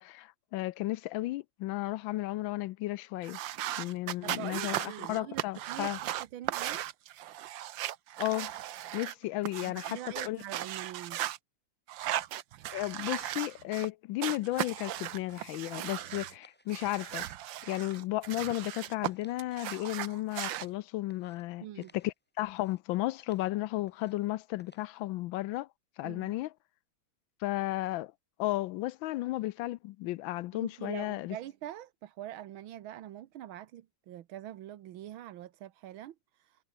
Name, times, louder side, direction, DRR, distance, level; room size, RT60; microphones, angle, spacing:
voice 1, 0.0-3.4 3.8-6.0 8.2-8.5 8.9-10.4 12.7-17.3 17.6-21.7 21.9-25.7 26.0-26.5 27.4-28.1 28.4-31.4, left 17 dB, 80° left, 1.3 m, -34 dB
sound 1, 3.2-9.1 9.4-11.4 11.9-13.9 14.2-16.3 16.7-19.1 19.4-20.7, right 13 dB, 75° right, 1.5 m, -37 dB
voice 2, 4.2-6.9 9.6-11.2 21.6-21.9 26.0-26.3 30.5-36.6, right 12 dB, 90° right, 1.8 m, -44 dB
sound 2, 15.6-17.5 17.7-18.7 19.0-20.8 21.1-21.4 21.8-22.1 22.4-22.8 23.2-23.5 23.8-24.3 24.6-25.0, equal, 5° left, 4.5 m, -63 dB
omnidirectional pair, 2.2 m